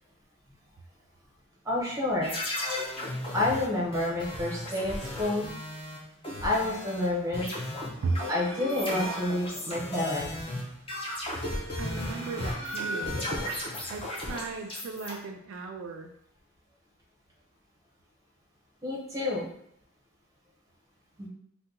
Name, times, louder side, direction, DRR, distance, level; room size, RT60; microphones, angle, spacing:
voice 1, 1.6-2.3 3.3-5.5 6.4-7.5 7.8-7.9 8.3-10.3 18.8-19.5 21.2-21.3, left 2 dB, 15° right, -3 dB, 0.7 m, -29 dB
sound 1, 2.2-7.1 7.3-15.1, left 1 dB, 25° left, 0.5 m, -35 dB
sound 2, 7.9-9.5 11.4-13.4, equal, 70° left, 1.3 m, -39 dB
voice 2, 11.8-13.3 13.9-16.1, right 3 dB, 65° right, 3 dB, 0.3 m, -35 dB
2.7 x 2.2 x 3.6 m, 0.71 s
head